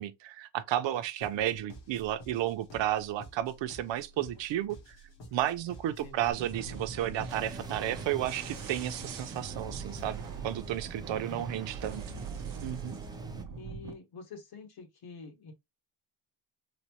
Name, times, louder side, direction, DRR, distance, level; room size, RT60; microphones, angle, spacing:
voice 1, 0.0-5.0 5.3-12.0 12.6-12.9, right 12 dB, 90° right, 0.6 m, -33 dB
sound 1, 1.2-9.2, right 1 dB, 85° left, 1.7 m, -51 dB
voice 2, 5.8-6.8 11.1-11.7 12.2-12.6 13.6-15.5, left 3 dB, 60° left, 1.2 m, -48 dB
sound 2, 6.3-13.9, right 5 dB, 50° right, 0.8 m, -41 dB
sound 3, 7.3-13.4, right 2 dB, 10° right, 0.4 m, -49 dB
4.1 x 2.1 x 2.9 m
wide cardioid pair, 155°, 43 cm